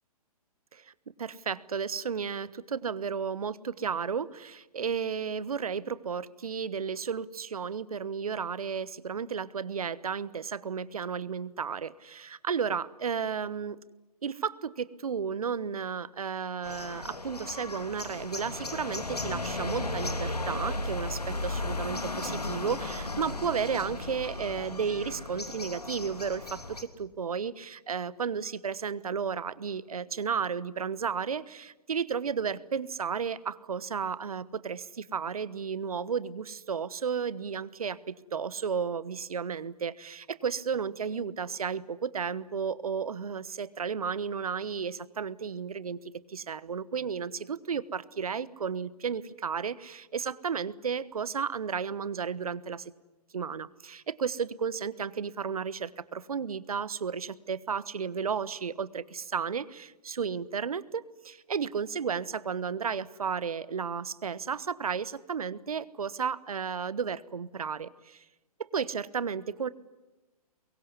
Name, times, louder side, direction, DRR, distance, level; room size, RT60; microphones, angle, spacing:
voice 1, 1.2-13.8 14.2-52.9 53.3-68.2 68.7-69.7, right 6 dB, 70° right, 18 dB, 1.2 m, -33 dB
sound 1, 16.6-26.8, left 2 dB, 85° left, 2.9 m, -35 dB
24.0 x 22.5 x 9.7 m, 1.1 s
figure-of-eight pair, 125°, 19 cm